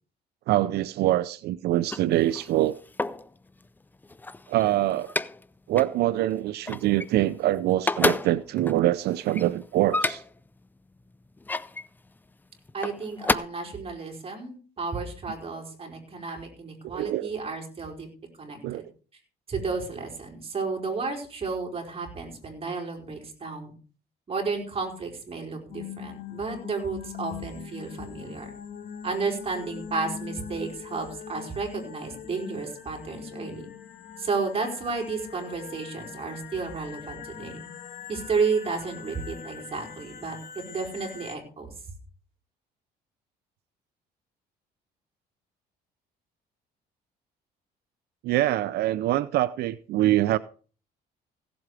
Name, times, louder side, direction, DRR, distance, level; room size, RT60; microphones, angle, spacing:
voice 1, 0.5-2.8 4.5-5.1 5.7-10.2 16.8-17.3 18.6-18.8 48.2-50.4, right 14 dB, 75° right, 0.5 m, -24 dB
sound 1, 1.7-3.3 3.9-5.5 5.8-6.0 6.3-7.4 7.7-10.5 11.1-11.9 12.7-13.4, left 2 dB, 10° left, 0.5 m, -30 dB
voice 2, 12.7-18.1 18.4-18.8 19.5-23.7 24.3-28.5 29.0-33.7 34.2-37.6 38.1-41.7, right 4 dB, 35° right, 4.8 m, -32 dB
sound 2, 25.7-41.4, left 8 dB, 55° left, 1.5 m, -42 dB
16.5 x 7.8 x 4.9 m
cardioid pair, 110°, 17 cm